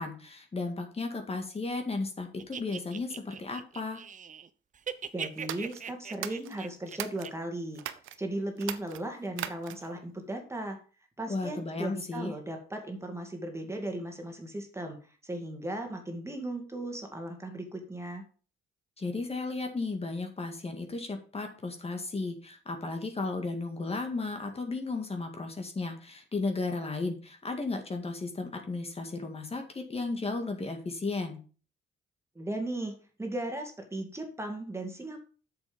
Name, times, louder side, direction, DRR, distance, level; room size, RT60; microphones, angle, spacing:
voice 1, 0.0-4.0 11.3-12.3 19.0-31.4, left 3 dB, 30° left, 4 dB, 1.9 m, -34 dB
sound 1, 2.4-4.5 4.7-7.3, right 7 dB, 40° right, 0.7 m, -40 dB
voice 2, 5.1-7.8 8.2-10.8 11.2-18.2 32.4-32.9 33.2-35.2, right 1 dB, 15° right, 3 dB, 2.3 m, -36 dB
sound 2, 5.4-7.3 7.7-8.2 8.6-10.0, right 12 dB, 85° right, 0.8 m, -39 dB
8.0 x 7.0 x 5.3 m, 0.38 s
cardioid pair, 90°, 20 cm